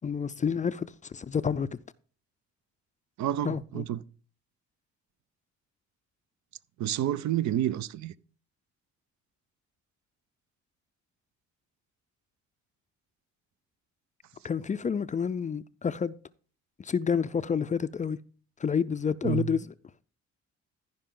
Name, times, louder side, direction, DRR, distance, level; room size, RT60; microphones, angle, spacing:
voice 1, 0.0-1.8 3.4-3.8 14.4-16.2 16.8-18.2 18.6-19.7, left 6 dB, 25° left, 0.4 m, -29 dB
voice 2, 3.2-4.0 6.8-8.1 19.2-19.5, right 12 dB, 70° right, 0.5 m, -29 dB
14.5 x 5.4 x 3.7 m
cardioid pair, 90°, 30 cm